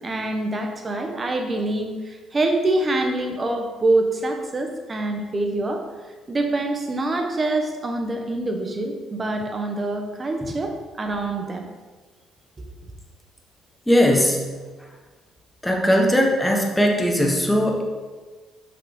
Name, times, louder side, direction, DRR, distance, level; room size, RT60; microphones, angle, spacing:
voice 1, 0.0-5.8 6.3-11.7 12.6-12.7, right 2 dB, 25° right, 4 dB, 1.2 m, -25 dB
voice 2, 13.9-14.5 15.6-17.8, equal, 5° left, 1 dB, 1.3 m, -19 dB
6.0 x 5.9 x 5.3 m, 1.4 s
cardioid pair, 110°, 0 cm